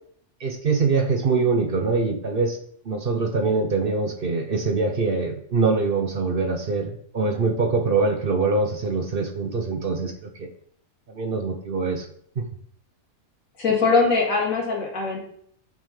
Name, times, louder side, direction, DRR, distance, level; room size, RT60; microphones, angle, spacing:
voice 1, 0.4-2.6 2.8-10.5 11.1-12.1 12.4-12.5, right 4 dB, 50° right, 5 dB, 0.8 m, -24 dB
voice 2, 13.6-15.2, left 4 dB, 80° left, -2 dB, 2.4 m, -21 dB
6.1 x 5.1 x 5.6 m, 0.65 s
omnidirectional pair, 1.4 m